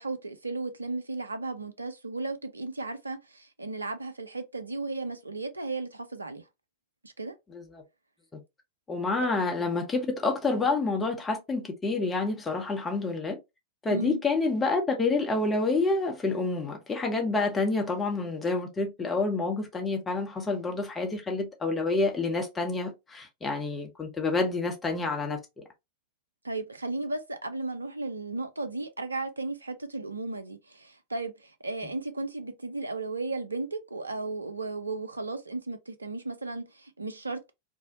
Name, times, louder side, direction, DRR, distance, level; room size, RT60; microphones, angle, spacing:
voice 1, 0.0-6.4 7.0-7.3 13.9-14.2 26.4-37.5, right 3 dB, 80° right, 0.4 m, -35 dB
voice 2, 7.5-7.8 8.3-8.4 8.9-13.4 13.8-25.4, left 3 dB, 15° left, 0.8 m, -28 dB
2.6 x 2.1 x 2.6 m
figure-of-eight pair, 90°, 0 cm